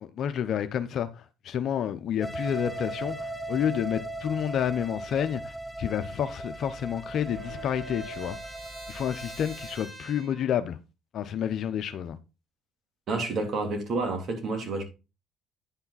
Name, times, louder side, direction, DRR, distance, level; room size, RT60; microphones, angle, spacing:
voice 1, 0.0-8.4 8.9-10.8 11.1-12.2, left 9 dB, 60° left, 0.8 m, -30 dB
sound 1, 2.2-9.8, right 1 dB, 5° left, 0.8 m, -38 dB
sound 2, 2.4-5.4 7.3-8.4, right 3 dB, 85° right, 4.1 m, -45 dB
Trumpet, 6.1-10.5, right 1 dB, 20° right, 2.5 m, -47 dB
voice 2, 13.1-14.8, right 3 dB, 50° right, 3.3 m, -29 dB
9.8 x 5.7 x 4.0 m
supercardioid pair, 75°, 0 cm